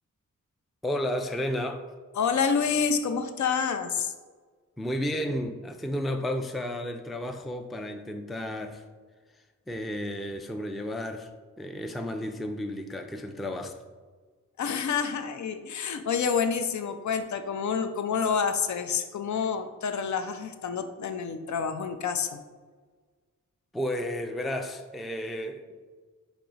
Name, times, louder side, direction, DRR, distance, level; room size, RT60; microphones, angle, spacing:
voice 1, 0.8-1.8 4.8-8.8 9.7-11.3 11.6-13.8 23.7-25.8, left 1 dB, ahead, 5 dB, 0.3 m, -32 dB
voice 2, 2.2-4.1 14.6-22.4, left 6 dB, 60° left, 8 dB, 0.5 m, -28 dB
4.5 x 3.0 x 3.9 m, 1.5 s
cardioid pair, 55°, 33 cm